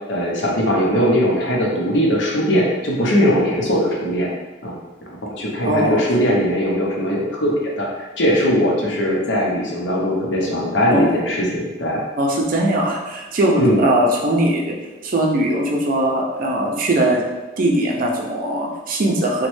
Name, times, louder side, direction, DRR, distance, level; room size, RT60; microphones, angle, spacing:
voice 1, 0.1-4.3 4.6-4.7 5.0-12.0 13.6-13.8, equal, 75° left, -3 dB, 0.7 m, -20 dB
voice 2, 5.6-6.0 10.9-11.2 12.2-14.8 15.0-17.2 17.6-19.5, right 1 dB, 50° right, 0 dB, 0.5 m, -20 dB
3.0 x 2.2 x 3.1 m, 1.2 s
head